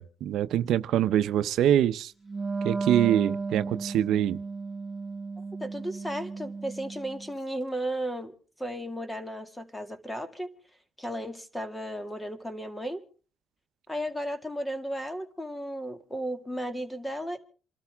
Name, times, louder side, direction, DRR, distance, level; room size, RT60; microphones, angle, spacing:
voice 1, 0.0-2.1 2.6-4.4, right 11 dB, 80° right, 0.7 m, -24 dB
Wind instrument woodwind instrument, 2.2-7.3, right 4 dB, 25° right, 1.0 m, -34 dB
voice 2, 5.6-8.3 8.6-10.5 11.0-13.0 13.9-17.4, equal, 10° left, 2.2 m, -34 dB
27.5 x 13.0 x 3.5 m
cardioid pair, 90°, 0 cm